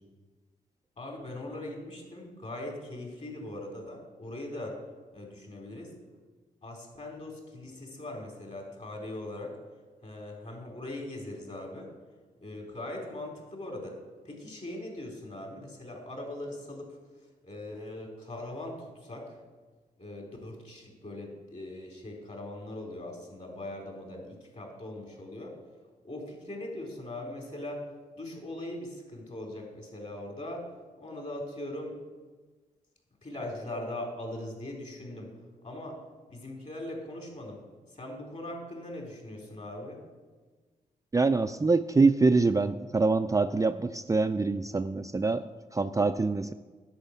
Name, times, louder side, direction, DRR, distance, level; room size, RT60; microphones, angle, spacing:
voice 1, 1.0-4.8 5.1-5.9 6.6-9.6 10.0-11.9 12.4-14.0 14.2-17.0 17.4-19.4 20.0-25.6 26.0-27.8 28.1-30.7 31.0-32.0 33.2-35.3 35.6-36.0 36.3-37.6 37.9-40.0, left 1 dB, 45° left, 0 dB, 4.0 m, -40 dB
voice 2, 41.1-45.4 45.7-46.5, right 3 dB, 20° right, 8 dB, 0.4 m, -25 dB
10.5 x 5.0 x 8.2 m, 1.3 s
supercardioid pair, 50°, 17 cm